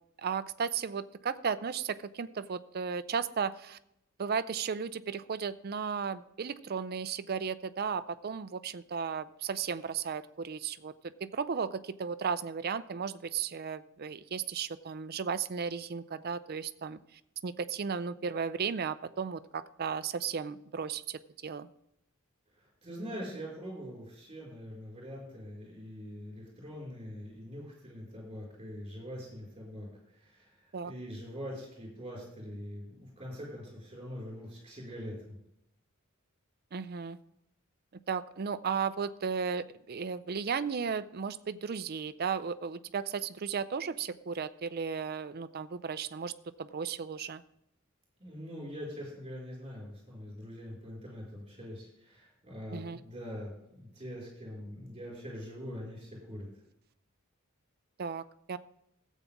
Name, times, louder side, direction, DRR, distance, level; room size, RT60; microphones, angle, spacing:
voice 1, 0.2-3.8 4.2-10.9 11.2-21.7 30.7-30.9 36.7-37.2 38.1-46.3 46.6-47.4 52.7-53.0 58.0-58.6, right 6 dB, 45° right, 14 dB, 0.5 m, -35 dB
voice 2, 22.5-35.4 48.2-56.5, equal, 25° right, -4 dB, 4.8 m, -43 dB
14.0 x 8.3 x 3.6 m, 0.79 s
head